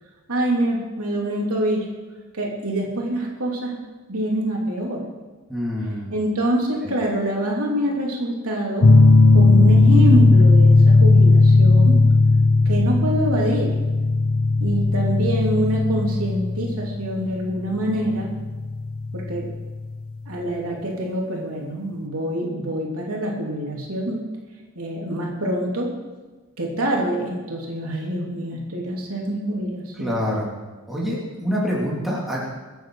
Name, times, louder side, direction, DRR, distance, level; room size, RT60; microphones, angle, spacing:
voice 1, 0.3-1.9 2.3-3.7 4.1-5.0 6.1-8.9 9.3-12.0 12.6-13.7 14.6-18.3 19.1-19.5 20.3-24.2 24.7-25.9 26.6-30.1, right 1 dB, 75° right, -2 dB, 3.1 m, -25 dB
voice 2, 5.5-6.1 30.0-30.5 30.9-32.5, equal, ahead, -6 dB, 3.1 m, -26 dB
sound 1, 8.8-20.0, left 3 dB, 70° left, 0.9 m, -16 dB
23.0 x 9.1 x 4.9 m, 1.3 s
head